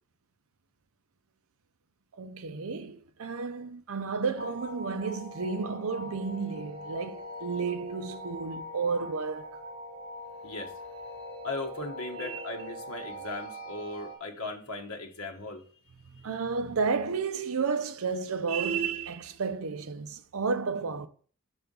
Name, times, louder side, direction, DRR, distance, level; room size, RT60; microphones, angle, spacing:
voice 1, 2.2-9.6 12.2-12.4 16.1-21.1, right 5 dB, 70° right, 0.6 m, -32 dB
sound 1, 4.4-14.2, equal, 25° left, 1.8 m, -42 dB
voice 2, 10.4-10.7 11.4-15.6 16.1-16.2, left 2 dB, 70° left, 1.2 m, -38 dB
6.2 x 3.4 x 5.3 m
head